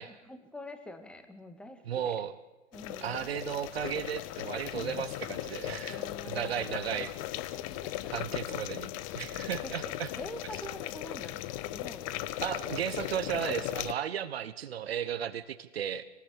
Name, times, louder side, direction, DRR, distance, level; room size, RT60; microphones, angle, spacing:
voice 1, 0.0-2.2 2.7-3.3 5.8-7.1 7.6-8.4 9.6-12.1, left 1 dB, 5° left, 7 dB, 2.0 m, -46 dB
voice 2, 1.9-2.4 3.0-7.1 8.1-10.1 12.4-16.0, right 9 dB, 55° right, 13 dB, 1.4 m, -35 dB
sound 1, 2.7-13.9, left 15 dB, 30° left, 0.8 m, -37 dB
26.0 x 19.5 x 8.5 m, 1.0 s
figure-of-eight pair, 115°, 37 cm